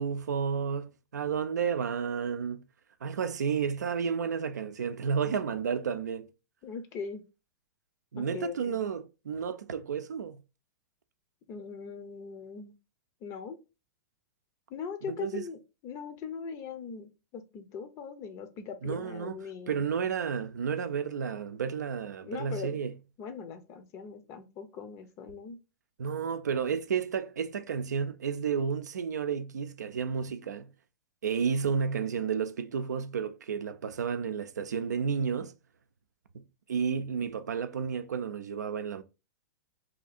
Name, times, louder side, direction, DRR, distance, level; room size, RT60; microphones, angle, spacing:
voice 1, 0.0-2.6 3.0-6.3 8.1-10.4 15.1-15.4 18.8-19.4 19.7-22.9 26.0-30.7 31.2-35.5 36.3-36.4 36.7-39.0, right 6 dB, 85° right, 0.4 m, -31 dB
voice 2, 6.6-7.2 8.2-8.8 11.5-12.7 13.2-13.6 14.7-19.8 22.2-22.8 23.2-25.6, left 6 dB, 35° left, 0.6 m, -40 dB
2.8 x 2.5 x 4.1 m
hypercardioid pair, 120°, 9 cm